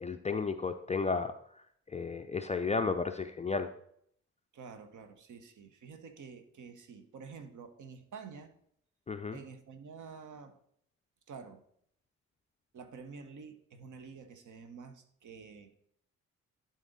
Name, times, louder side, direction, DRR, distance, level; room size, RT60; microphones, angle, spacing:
voice 1, 0.0-1.3 1.9-3.7 9.1-9.4, left 4 dB, 20° left, 7 dB, 0.5 m, -33 dB
voice 2, 4.5-8.5 9.3-10.6 11.3-11.6 12.7-15.7, right 5 dB, 50° right, 8 dB, 1.1 m, -49 dB
11.0 x 4.1 x 3.9 m, 0.68 s
hypercardioid pair, 40°, 38 cm